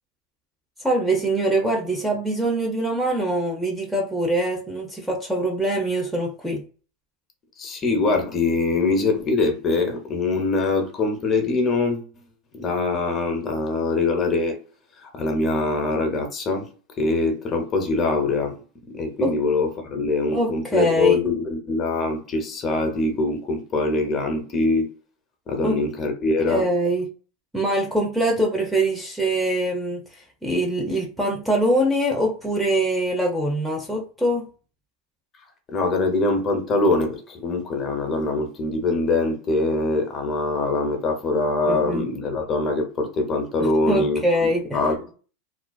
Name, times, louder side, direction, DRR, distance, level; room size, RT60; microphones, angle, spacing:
voice 1, 0.8-6.6 19.2-19.3 20.3-21.2 25.6-25.8 26.5-27.1 27.5-34.5 41.7-42.0 43.6-44.8, right 1 dB, 5° right, 0.5 m, -23 dB
voice 2, 7.6-12.1 12.6-14.6 15.0-16.7 17.0-18.5 18.9-24.9 25.5-26.6 35.7-45.0, left 3 dB, 30° left, 0.8 m, -23 dB
2.4 x 2.3 x 2.2 m
supercardioid pair, 125°, 0 cm